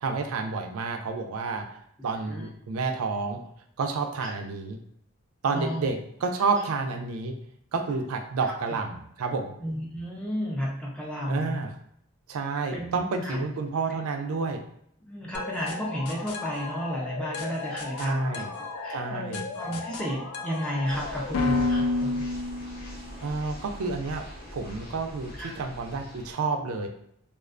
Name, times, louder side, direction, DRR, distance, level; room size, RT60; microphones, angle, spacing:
voice 1, 0.0-1.8 2.0-3.4 3.8-4.8 5.4-7.3 7.7-9.5 11.3-11.7 12.3-14.6 18.0-18.5 18.9-19.4 23.2-24.2 24.5-26.9, right 4 dB, 80° right, 5 dB, 0.4 m, -30 dB
voice 2, 2.0-2.5 4.2-4.4 5.5-5.9 9.6-11.6 12.7-13.4 15.1-18.5 18.7-22.3 25.3-25.5, equal, 5° left, -4 dB, 0.3 m, -33 dB
sound 1, 15.3-23.1, left 3 dB, 85° left, 0.3 m, -32 dB
sound 2, 20.9-26.3, equal, 45° left, 0.7 m, -43 dB
2.3 x 2.2 x 2.4 m, 0.69 s
head